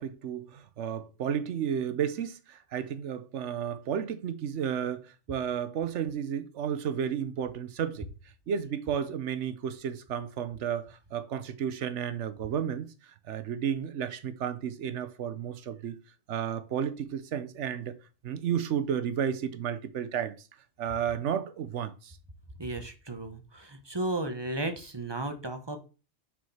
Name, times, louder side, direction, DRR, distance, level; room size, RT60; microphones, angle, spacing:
voice 1, 0.0-8.1 8.5-16.0 16.3-18.0 18.2-20.5 20.8-22.2, right 8 dB, 85° right, 1.1 m, -32 dB
voice 2, 22.6-25.8, right 2 dB, 25° right, 1.0 m, -34 dB
6.2 x 4.9 x 5.6 m
omnidirectional pair, 1.2 m